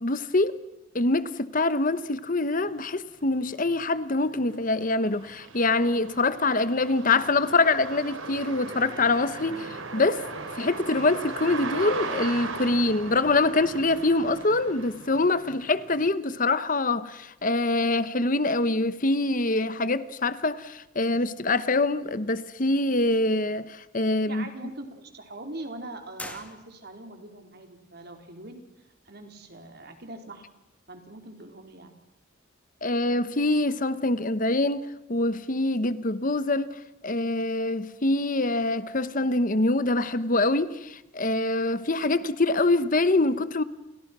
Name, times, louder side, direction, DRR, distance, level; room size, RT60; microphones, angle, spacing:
voice 1, 0.0-0.6 0.9-9.6 9.9-10.3 10.5-24.4 32.8-43.6, left 2 dB, 40° left, 1.1 m, -25 dB
sound 1, 2.7-2.8 3.2-16.1, right 3 dB, 85° right, 4.1 m, -38 dB
voice 2, 24.2-28.6 29.0-30.5 30.9-32.0 41.9-42.2, right 2 dB, 55° right, 4.2 m, -42 dB
sound 2, 26.2-27.2, left 2 dB, 5° left, 2.5 m, -42 dB
30.0 x 30.0 x 6.2 m
head